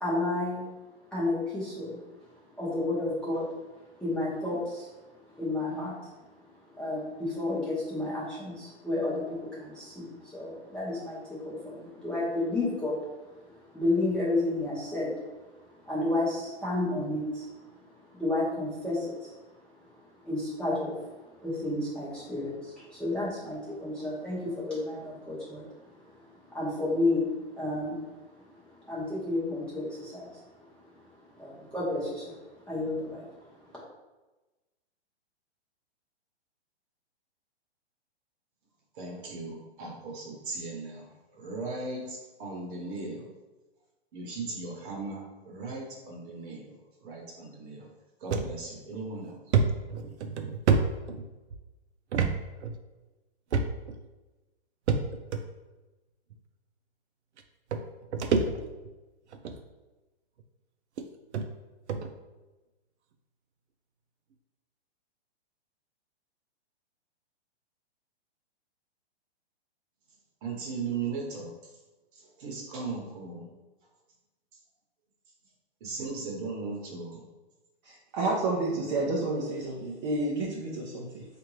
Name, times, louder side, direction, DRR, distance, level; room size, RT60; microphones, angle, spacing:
voice 1, 0.0-0.7 1.1-2.0 2.6-3.5 4.0-4.9 5.4-6.1 6.8-15.1 15.5-17.5 18.1-19.3 20.2-21.1 21.4-25.9 26.2-28.1 28.5-30.6 31.2-33.5, left 2 dB, 5° left, -9 dB, 0.8 m, -31 dB
voice 2, 39.0-41.1 41.4-43.3 44.1-46.7 47.0-47.9 48.2-49.4 70.4-71.5 72.4-73.5 75.8-77.2, right 4 dB, 50° right, -1 dB, 1.1 m, -37 dB
sound 1, 48.3-48.5 48.9-49.0 49.5-51.6 52.1-52.3 52.6-52.7 53.5-54.0 54.9-55.4 56.3-56.4 57.4-57.5 57.7-58.9 59.3-59.6 60.4-60.5 61.0-61.1 61.3-61.5 61.9-62.1, right 5 dB, 80° right, 0.6 m, -27 dB
voice 3, 77.8-81.2, right 2 dB, 30° right, -4 dB, 0.6 m, -30 dB
4.3 x 2.6 x 3.1 m, 1.1 s
hypercardioid pair, 145°, 33 cm